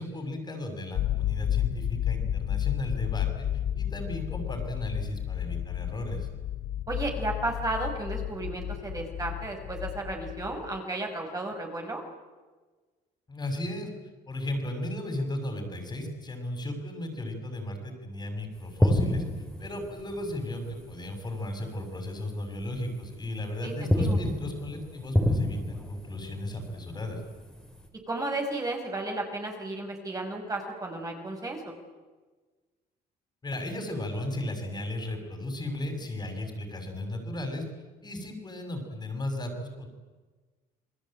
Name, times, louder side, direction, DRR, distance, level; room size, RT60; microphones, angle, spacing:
voice 1, 0.0-3.5 3.7-6.3 13.3-13.9 14.3-19.2 19.6-27.2 33.4-37.6 38.0-39.9, left 1 dB, 25° left, 5 dB, 6.4 m, -35 dB
sound 1, 1.0-10.8, left 11 dB, 65° left, 0.9 m, -32 dB
voice 2, 6.9-12.0 23.6-23.7 24.0-24.2 28.1-31.7, right 2 dB, 20° right, 1 dB, 6.0 m, -33 dB
sound 2, 18.6-21.6 21.8-22.1 22.6-23.4 23.7-27.9, left 1 dB, 5° left, 5.2 m, -29 dB
29.0 x 20.5 x 9.0 m, 1.3 s
cardioid pair, 110°, 17 cm